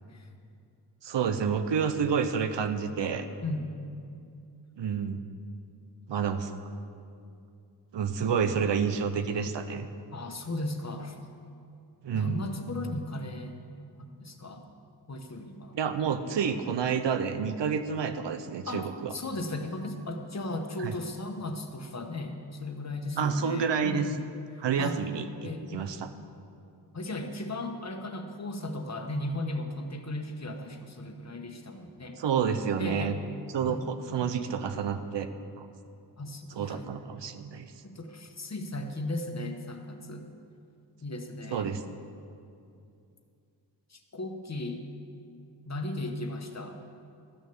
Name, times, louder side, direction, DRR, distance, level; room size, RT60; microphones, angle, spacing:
voice 1, 1.0-3.3 4.8-5.2 6.1-6.5 7.9-9.9 12.0-12.4 15.7-19.1 20.8-20.9 23.2-24.1 24.6-26.1 32.2-33.2 33.5-35.3 35.6-35.7 36.6-37.7 41.5-41.8, right 6 dB, 85° right, 9 dB, 0.6 m, -29 dB
voice 2, 3.4-3.9 10.1-11.2 12.1-13.6 14.0-14.6 15.1-15.8 18.7-24.2 24.5-25.0 25.4-25.9 26.9-32.2 32.8-33.2 33.6-33.8 34.2-34.3 36.2-36.8 37.8-40.3 41.0-41.7 43.9-44.8 45.7-46.8, left 2 dB, 40° left, 5 dB, 1.1 m, -36 dB
13.0 x 6.5 x 6.9 m, 2.5 s
wide cardioid pair, 90°, 42 cm